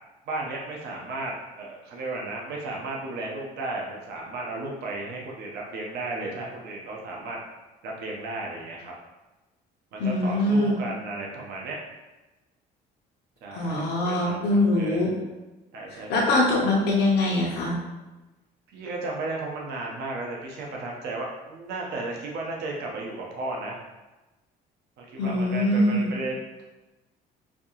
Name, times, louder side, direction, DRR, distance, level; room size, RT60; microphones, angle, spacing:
voice 1, 0.3-7.4 7.8-8.9 9.9-11.8 13.4-15.1 15.7-16.4 18.7-23.8 25.0-26.6, right 2 dB, 75° right, -2 dB, 0.8 m, -34 dB
voice 2, 10.0-10.7 13.6-15.1 16.1-17.8 25.2-26.1, left 1 dB, 80° left, -4 dB, 0.8 m, -23 dB
4.3 x 2.8 x 2.9 m, 1.1 s
cardioid pair, 110°, 17 cm